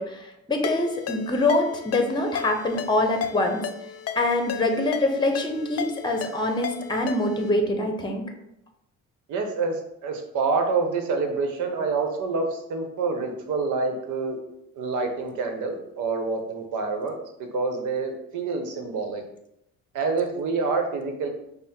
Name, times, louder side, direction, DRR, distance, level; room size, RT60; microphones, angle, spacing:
voice 1, 0.0-3.6 4.2-8.2, left 2 dB, 15° left, 4 dB, 0.8 m, -24 dB
Ringtone, 0.6-7.5, left 7 dB, 55° left, 0.5 m, -35 dB
voice 2, 9.3-14.4 14.8-17.2 17.5-19.2 19.9-21.3, right 4 dB, 80° right, 4 dB, 0.9 m, -27 dB
5.5 x 2.0 x 4.3 m, 0.81 s
cardioid pair, 90°, 30 cm